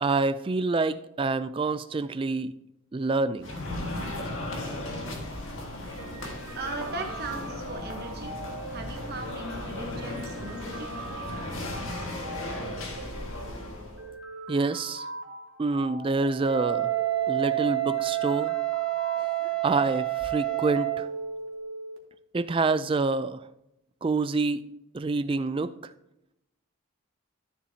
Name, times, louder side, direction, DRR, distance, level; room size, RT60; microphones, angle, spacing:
voice 1, 0.0-2.5 2.9-3.5 14.5-15.0 15.6-16.9 17.3-18.5 19.2-19.3 19.6-21.1 22.3-23.4 24.0-24.7 24.9-25.9, right 3 dB, 25° right, 13 dB, 0.3 m, -27 dB
sound 1, 3.4-14.0, left 1 dB, 70° left, 1.7 m, -36 dB
sound 2, 6.0-22.0, right 2 dB, 75° right, 1.6 m, -41 dB
voice 2, 6.6-8.4 8.7-10.9, right 2 dB, 45° right, 3 dB, 1.0 m, -38 dB
Wind instrument woodwind instrument, 16.4-21.1, right 17 dB, 5° left, 2.7 m, -28 dB
13.0 x 7.2 x 2.8 m, 0.88 s
head